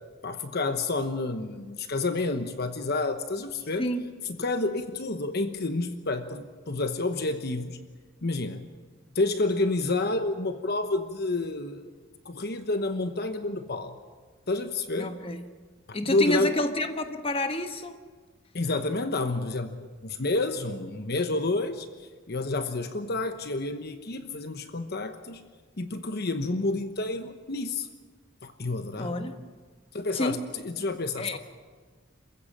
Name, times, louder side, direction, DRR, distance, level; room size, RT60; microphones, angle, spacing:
voice 1, 0.2-3.9 4.4-7.8 8.2-8.6 9.1-11.9 12.2-14.0 14.5-15.1 16.1-16.5 18.5-25.4 25.8-27.9 28.4-29.3 29.9-31.4, left 2 dB, 50° left, 8 dB, 1.1 m, -29 dB
voice 2, 15.0-15.4 15.9-18.0 29.0-29.4 30.1-30.4 31.2-31.4, left 1 dB, 30° left, 7 dB, 1.3 m, -29 dB
27.5 x 15.5 x 7.4 m, 1.5 s
head